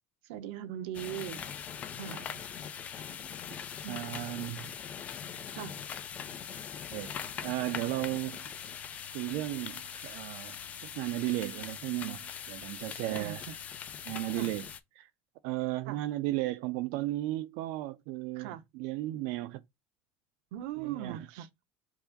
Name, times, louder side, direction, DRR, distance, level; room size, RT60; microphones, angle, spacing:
voice 1, 0.2-1.5 2.0-2.3 3.8-4.1 5.5-5.8 13.0-13.6 14.3-14.5 15.9-16.0 18.3-18.6 20.5-21.5, right 11 dB, 85° right, 0.7 m, -40 dB
sound 1, 0.9-14.8, left 8 dB, 25° left, 0.4 m, -42 dB
voice 2, 3.9-4.7 6.9-8.4 9.1-10.6 10.8-13.4 14.0-14.7 15.0-15.1 15.4-19.6 20.8-21.4, right 17 dB, 65° right, 0.4 m, -35 dB
4.6 x 2.5 x 3.8 m
cardioid pair, 170°, 6 cm